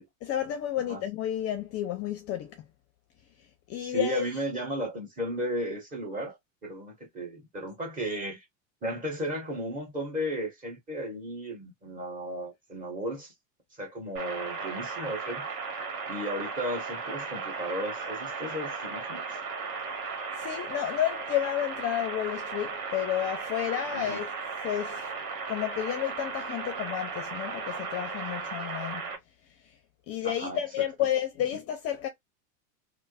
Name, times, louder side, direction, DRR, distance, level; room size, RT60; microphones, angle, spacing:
voice 1, 0.2-2.6 3.7-4.4 20.4-24.3 24.6-25.1 25.5-29.0 30.1-32.1, left 11 dB, 35° left, 0.5 m, -31 dB
voice 2, 3.8-6.4 6.6-8.4 8.8-13.3 13.8-15.5 16.1-19.2 23.9-24.2 30.2-30.6, right 1 dB, 20° right, 1.3 m, -35 dB
sound 1, 14.2-29.2, right 4 dB, 55° right, 1.3 m, -36 dB
3.2 x 2.0 x 2.3 m
supercardioid pair, 125°, 42 cm